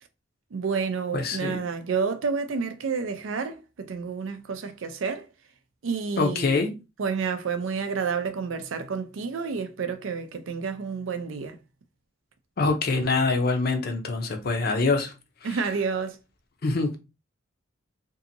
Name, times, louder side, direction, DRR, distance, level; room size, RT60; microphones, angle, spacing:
voice 1, 0.5-5.3 5.8-6.6 7.0-11.6 15.4-16.2, right 5 dB, 90° right, 0.5 m, -29 dB
voice 2, 1.1-1.6 6.2-6.7 12.6-15.1 16.6-16.9, left 3 dB, 50° left, 0.6 m, -24 dB
2.7 x 2.6 x 2.6 m
head